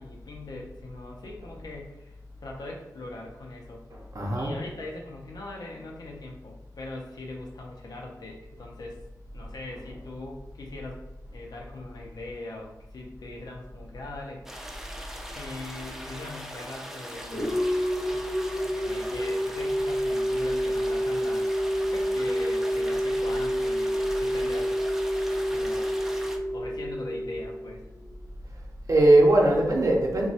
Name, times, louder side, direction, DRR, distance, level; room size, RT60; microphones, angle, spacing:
voice 1, 0.0-2.1 2.4-3.8 4.3-9.0 9.3-11.1 11.3-14.7 15.3-17.6 18.8-21.5 21.9-24.7 25.5-25.9 26.5-27.8, left 2 dB, 75° left, 0 dB, 0.6 m, -41 dB
voice 2, 3.9-4.6 28.9-30.3, right 1 dB, 55° right, -1 dB, 0.6 m, -20 dB
sound 1, 14.5-26.4, right 1 dB, 5° right, 0.3 m, -41 dB
sound 2, 17.3-28.0, equal, 35° left, 0.7 m, -28 dB
3.0 x 2.2 x 2.7 m, 0.96 s
wide cardioid pair, 110°, 7 cm